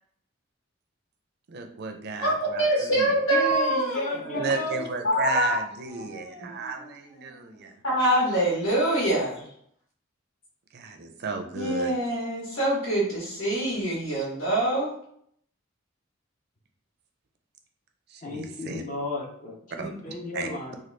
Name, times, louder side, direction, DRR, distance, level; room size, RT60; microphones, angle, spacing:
voice 1, 1.5-3.2 4.2-7.8 10.7-11.9 18.1-18.8 19.8-20.5, right 4 dB, 55° right, 5 dB, 0.4 m, -34 dB
voice 2, 2.2-4.0 4.3-4.4 5.0-5.6 6.0-6.9 7.8-9.4 11.5-14.9, right 1 dB, 85° left, -5 dB, 1.2 m, -25 dB
voice 3, 3.3-4.9 18.2-20.8, left 2 dB, 40° left, 0 dB, 0.6 m, -33 dB
3.1 x 2.2 x 3.2 m, 0.66 s
head